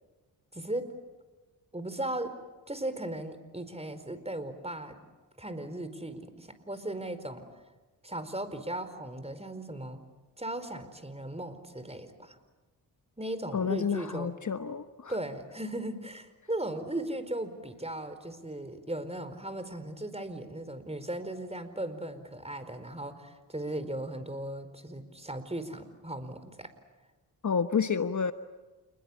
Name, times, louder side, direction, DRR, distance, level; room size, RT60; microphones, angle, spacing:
voice 1, 0.5-0.9 1.7-2.3 2.7-5.0 5.4-7.5 8.0-10.0 10.4-12.4 13.2-14.3 15.1-26.7, right 1 dB, 15° right, 11 dB, 4.7 m, -37 dB
voice 2, 13.5-15.2 27.4-28.3, left 6 dB, 40° left, 10 dB, 1.3 m, -29 dB
28.5 x 21.5 x 8.8 m, 1.2 s
hypercardioid pair, 40°, 44 cm